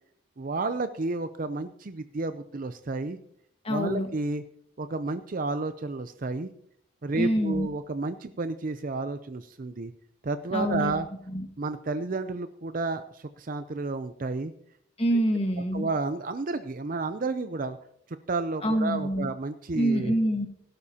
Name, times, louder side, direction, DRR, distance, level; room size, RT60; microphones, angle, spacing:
voice 1, 0.4-3.2 3.7-4.4 4.8-6.5 7.0-9.9 10.2-11.1 11.6-14.5 15.1-15.2 15.7-17.8 18.1-20.1, right 3 dB, 40° right, 11 dB, 0.5 m, -31 dB
voice 2, 3.6-4.1 7.2-7.7 10.5-11.0 11.3-11.4 15.0-15.9 18.6-19.3 19.7-20.5, equal, 30° left, 5 dB, 1.5 m, -26 dB
17.0 x 12.0 x 2.8 m, 0.70 s
head